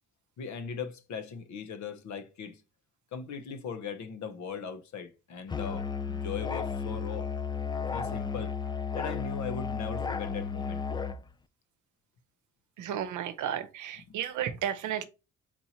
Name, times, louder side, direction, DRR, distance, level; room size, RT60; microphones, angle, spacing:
voice 1, 0.4-2.6 3.1-7.3 7.9-8.6 8.9-10.8 14.1-14.2, left 6 dB, 65° left, 0.9 m, -39 dB
Musical instrument, 5.5-11.2, left 5 dB, 15° left, 0.3 m, -33 dB
voice 2, 12.8-15.0, right 10 dB, 75° right, 0.7 m, -33 dB
4.3 x 2.9 x 4.2 m
cardioid pair, 90°, 30 cm